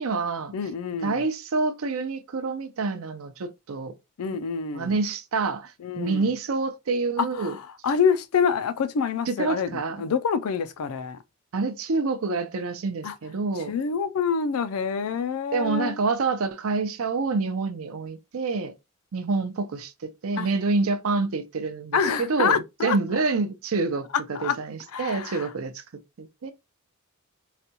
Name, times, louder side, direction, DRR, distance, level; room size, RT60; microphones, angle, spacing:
voice 1, 0.0-0.5 1.0-3.9 4.7-7.6 9.3-10.0 11.5-13.7 15.5-18.7 19.1-25.8 26.2-26.5, right 4 dB, 70° right, 0.5 m, -27 dB
voice 2, 0.5-1.2 4.2-4.9 5.8-6.3 7.2-9.7 10.0-11.2 13.0-13.1 13.7-15.9 20.4-20.5 21.9-23.0 24.3-24.6 24.9-25.5, left 6 dB, 75° left, 0.4 m, -26 dB
4.0 x 2.2 x 2.7 m
head